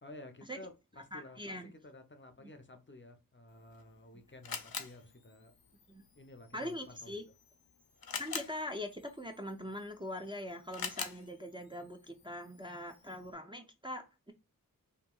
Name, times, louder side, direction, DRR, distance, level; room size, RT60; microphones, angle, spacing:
voice 1, 0.0-5.5 6.2-7.3, left 1 dB, 35° left, 0.5 m, -53 dB
voice 2, 1.1-1.7 5.9-6.0 6.5-7.2 8.2-14.3, left 1 dB, 15° right, 0.5 m, -42 dB
Camera, 3.5-13.3, left 5 dB, 80° left, 0.6 m, -47 dB
3.0 x 2.7 x 2.2 m
wide cardioid pair, 45°, 36 cm